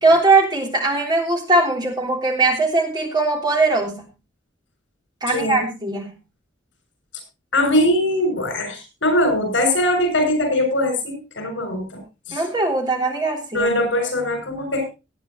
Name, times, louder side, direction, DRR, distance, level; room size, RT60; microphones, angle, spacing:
voice 1, 0.0-4.0 5.2-6.1 12.3-13.7, right 3 dB, 25° right, 2 dB, 3.3 m, -20 dB
voice 2, 5.3-5.6 7.5-12.0 12.3-12.4 13.5-14.8, left 1 dB, 80° left, 6 dB, 6.8 m, -21 dB
18.0 x 10.5 x 3.0 m, 0.28 s
head